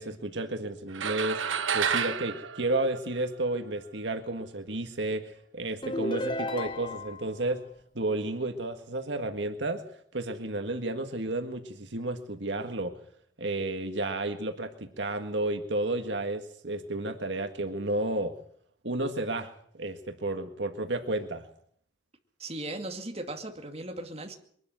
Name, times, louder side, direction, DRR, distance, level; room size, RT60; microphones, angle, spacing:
voice 1, 0.0-1.4 1.7-7.6 8.0-9.8 10.1-13.0 13.4-18.3 18.8-21.4, right 2 dB, 70° right, 6 dB, 1.8 m, -32 dB
sound 1, 0.9-3.6, right 7 dB, 90° right, 1.2 m, -30 dB
sound 2, 5.8-7.3, left 1 dB, 25° left, 1.1 m, -33 dB
voice 2, 22.4-24.3, right 2 dB, 30° right, 3 dB, 2.4 m, -37 dB
23.0 x 12.0 x 9.2 m, 0.63 s
head